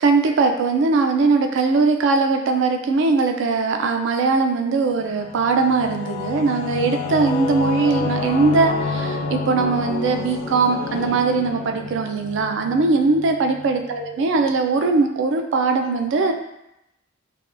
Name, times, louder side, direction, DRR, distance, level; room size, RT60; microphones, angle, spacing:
voice 1, 0.0-16.3, right 4 dB, 60° right, 4 dB, 0.3 m, -20 dB
Singing / Musical instrument, 5.0-14.2, left 3 dB, 90° left, 0.4 m, -29 dB
3.4 x 2.2 x 2.4 m, 0.86 s
head